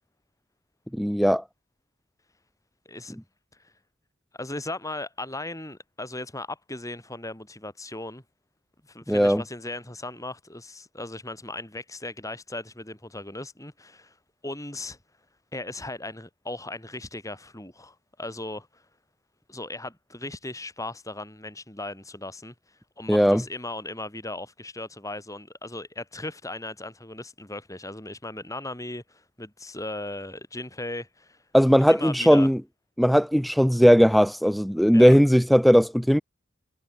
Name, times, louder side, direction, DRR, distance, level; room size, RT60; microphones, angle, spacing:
voice 1, 0.9-1.4 9.1-9.4 23.1-23.4 31.5-32.6 33.0-36.2, equal, ahead, 0.9 m, -18 dB
voice 2, 2.8-3.2 3.6-3.7 4.4-8.2 8.9-14.1 14.4-15.0 15.5-18.8 19.5-22.5 23.0-31.4 31.9-32.5 34.9-35.1, left 2 dB, 15° left, 6.3 m, -37 dB
head